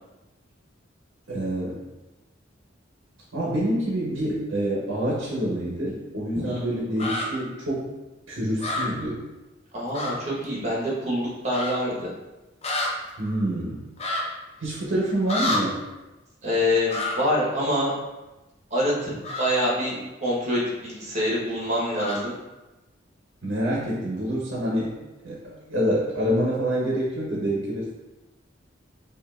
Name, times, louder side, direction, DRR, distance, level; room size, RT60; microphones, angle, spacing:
voice 1, 1.3-1.8 3.3-7.9 8.3-9.2 13.2-13.9 14.6-15.8 23.4-24.9 25.2-27.9, equal, 90° right, -5 dB, 0.9 m, -27 dB
sound 1, 7.0-7.3 8.6-8.9 9.9-10.1 10.4-10.5 11.5-11.7 12.6-12.9 14.0-14.2 15.3-15.6 16.9-17.2 19.2-19.5 22.0-22.2, left 2 dB, 35° left, 0.5 m, -28 dB
voice 2, 9.7-12.1 16.4-17.9 18.7-22.3, left 1 dB, 35° right, -5 dB, 1.1 m, -26 dB
5.0 x 2.5 x 2.4 m, 1.1 s
head